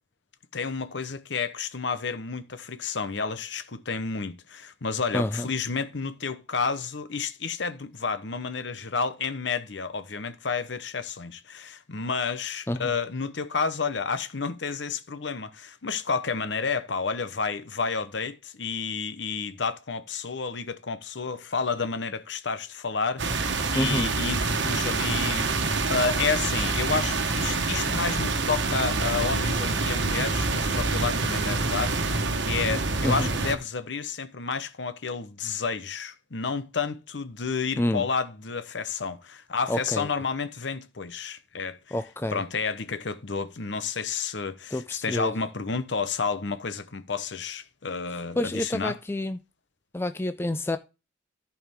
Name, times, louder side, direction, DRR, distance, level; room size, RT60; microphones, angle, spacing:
voice 1, 0.5-42.0 42.3-49.0, left 5 dB, 65° left, 0.9 m, -31 dB
voice 2, 5.1-5.4 12.7-12.9 23.7-24.2 33.0-33.3 37.8-38.1 39.7-40.1 41.9-42.4 44.7-45.3 48.4-49.4 49.9-50.8, left 1 dB, 10° left, 0.4 m, -28 dB
sound 1, 23.2-33.6, right 3 dB, 65° right, 1.2 m, -26 dB
14.5 x 4.8 x 3.6 m
head